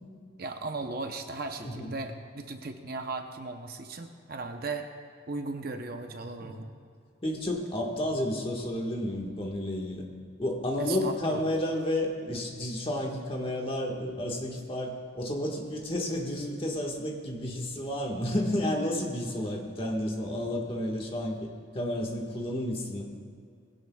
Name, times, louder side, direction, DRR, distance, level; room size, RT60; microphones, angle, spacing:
voice 1, 0.4-4.9 5.3-6.7 10.8-11.4, right 3 dB, 50° right, 5 dB, 0.8 m, -37 dB
voice 2, 1.6-1.9 6.4-6.5 7.2-10.0 10.4-23.1, left 1 dB, 25° left, 0 dB, 1.5 m, -31 dB
19.5 x 16.0 x 2.3 m, 2.3 s
head